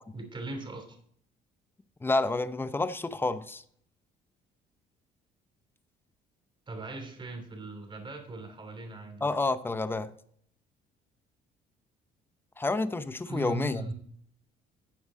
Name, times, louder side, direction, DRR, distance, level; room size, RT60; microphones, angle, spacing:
voice 1, 0.1-1.0 6.7-9.3 13.3-13.9, right 3 dB, 30° right, 2.9 m, -39 dB
voice 2, 2.0-3.6 9.2-10.1 12.6-13.9, left 3 dB, 15° left, 0.7 m, -29 dB
12.5 x 8.1 x 3.8 m
cardioid pair, 110°, 17 cm